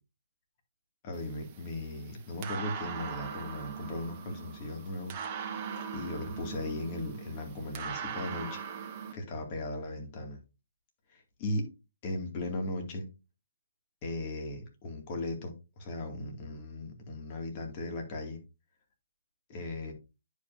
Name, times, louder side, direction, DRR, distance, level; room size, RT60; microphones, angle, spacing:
voice 1, 1.0-5.1 5.9-8.6 9.1-10.4 11.1-11.7 12.0-13.0 14.0-18.4 19.5-19.9, left 2 dB, 35° left, 2.3 m, -37 dB
sound 1, 1.1-9.1, right 7 dB, 30° right, 1.1 m, -41 dB
10.0 x 5.1 x 2.7 m
hypercardioid pair, 150°, 0 cm